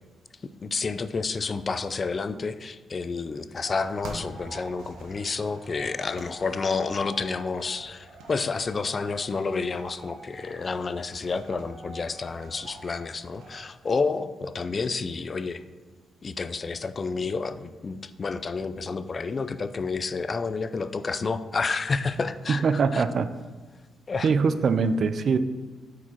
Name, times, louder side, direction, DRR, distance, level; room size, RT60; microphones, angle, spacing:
voice 1, 0.6-15.6 16.2-23.0 24.1-24.3, left 4 dB, 35° left, 12 dB, 0.4 m, -30 dB
sound 1, 3.6-13.6, right 2 dB, 85° right, 1.2 m, -45 dB
voice 2, 22.5-23.3 24.2-25.4, right 5 dB, 55° right, 12 dB, 0.4 m, -22 dB
8.2 x 4.8 x 4.4 m, 1.3 s
cardioid pair, 100°, 0 cm